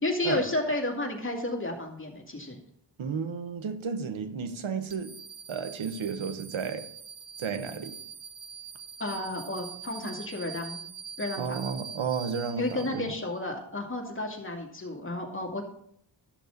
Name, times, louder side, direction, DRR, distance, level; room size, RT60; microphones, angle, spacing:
voice 1, 0.0-2.6 9.0-10.8 11.2-11.6 12.6-15.6, left 2 dB, 25° left, 2.4 m, -32 dB
voice 2, 3.0-5.1 5.5-6.9 7.4-8.0 11.4-13.1, right 6 dB, 90° right, 1.2 m, -32 dB
sound 1, 4.9-13.4, right 7 dB, 40° right, 0.9 m, -44 dB
13.0 x 6.7 x 4.0 m
wide cardioid pair, 105°, 46 cm